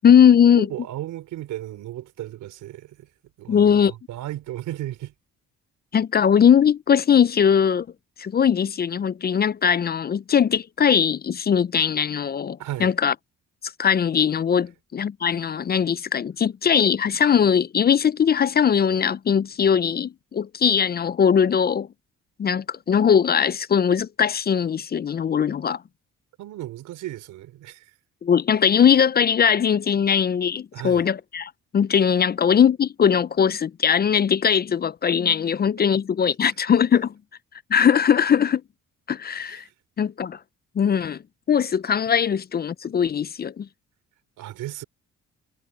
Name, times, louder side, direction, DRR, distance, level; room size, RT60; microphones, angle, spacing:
voice 1, 0.0-0.7 3.5-3.9 5.9-7.9 8.2-13.1 13.6-21.9 22.4-25.8 28.2-37.1 37.7-38.6 39.1-39.6 40.0-40.4 40.8-41.2 41.5-43.7, left 7 dB, 35° left, 0.4 m, -20 dB
voice 2, 0.6-3.1 3.4-5.1 12.6-12.9 26.4-27.9 30.7-31.1 39.4-39.7 44.4-44.8, right 14 dB, 85° right, 4.6 m, -35 dB
cardioid pair, 90°, 30 cm